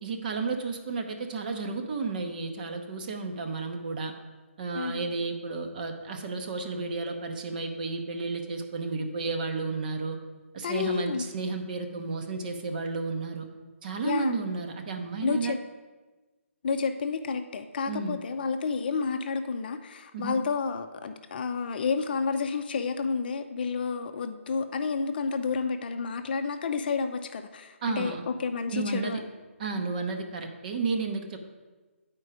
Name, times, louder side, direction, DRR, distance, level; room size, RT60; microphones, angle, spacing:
voice 1, 0.0-4.1 4.6-10.2 10.5-13.5 13.8-15.6 17.9-18.2 20.1-20.4 27.8-28.3 28.7-29.2 29.6-31.4, right 4 dB, 40° right, 5 dB, 0.8 m, -32 dB
voice 2, 4.7-5.1 10.6-11.2 14.0-14.4 15.2-15.6 16.6-29.2, left 5 dB, 45° left, 7 dB, 0.5 m, -30 dB
8.7 x 4.5 x 4.9 m, 1.2 s
figure-of-eight pair, 150°, 7 cm